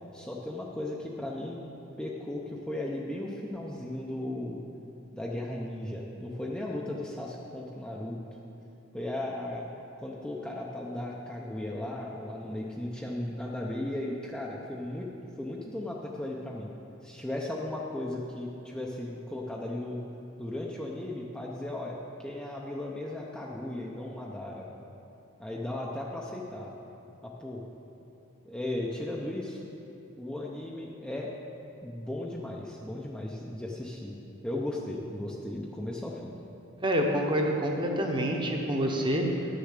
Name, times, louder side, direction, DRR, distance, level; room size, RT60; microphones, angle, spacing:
voice 1, 0.1-1.6 2.0-4.6 5.1-8.2 8.9-9.7 10.0-15.1 15.4-16.7 17.0-20.0 20.4-24.7 25.4-26.7 27.2-27.6 28.4-29.6 30.2-31.3 31.8-34.1 34.4-36.3, left 1 dB, 5° left, -3 dB, 0.6 m, -36 dB
voice 2, 36.8-39.3, equal, 25° right, 1 dB, 1.0 m, -27 dB
10.0 x 6.8 x 6.6 m, 2.8 s
head